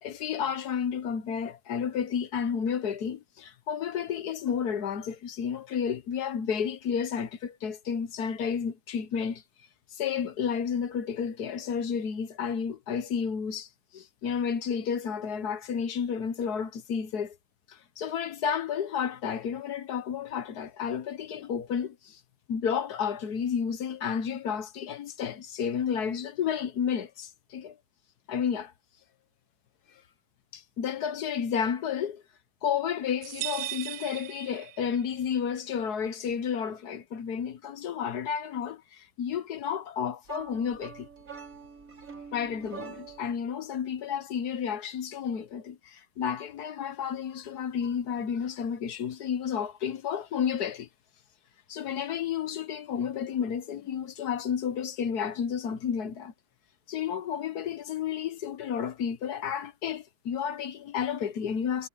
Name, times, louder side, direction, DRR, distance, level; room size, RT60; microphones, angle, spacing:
voice 1, 0.0-9.4 9.9-17.4 17.7-22.2 22.5-27.8 28.3-28.7 30.5-32.2 32.6-41.1 42.3-50.9 51.7-56.3 56.9-61.9, left 7 dB, 70° left, 1.5 m, -31 dB
sound 1, 33.2-35.2, right 16 dB, 70° right, 1.0 m, -37 dB
sound 2, 40.2-43.4, right 6 dB, 50° right, 4.7 m, -45 dB
omnidirectional pair, 1.8 m